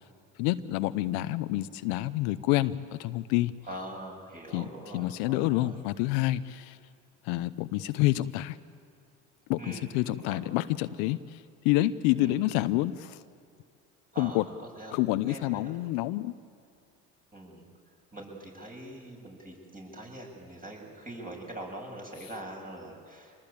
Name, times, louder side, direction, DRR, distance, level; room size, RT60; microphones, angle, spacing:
voice 1, 0.4-3.5 4.5-4.7 4.9-6.8 7.2-8.6 9.5-13.2 14.2-14.5 14.9-16.3, left 16 dB, 80° left, 13 dB, 0.8 m, -28 dB
voice 2, 3.6-5.8 9.6-9.9 10.3-10.4 12.2-12.4 14.1-15.0 15.2-15.7 17.3-17.6 18.1-23.4, right 1 dB, 20° right, 0 dB, 7.4 m, -43 dB
25.5 x 19.5 x 8.6 m, 2.3 s
supercardioid pair, 85°, 37 cm